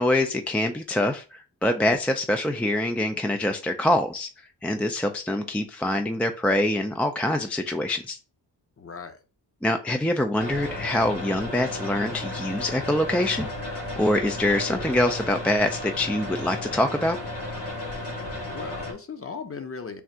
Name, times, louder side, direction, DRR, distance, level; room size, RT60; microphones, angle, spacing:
voice 1, 0.0-4.3 4.6-8.2 9.6-17.2, left 1 dB, 5° left, 0.3 m, -25 dB
voice 2, 8.8-9.2 18.4-20.0, left 5 dB, 35° left, 0.8 m, -37 dB
sound 1, 10.4-18.9, left 1 dB, 70° left, 2.0 m, -34 dB
3.6 x 2.4 x 4.2 m
cardioid pair, 70°, 42 cm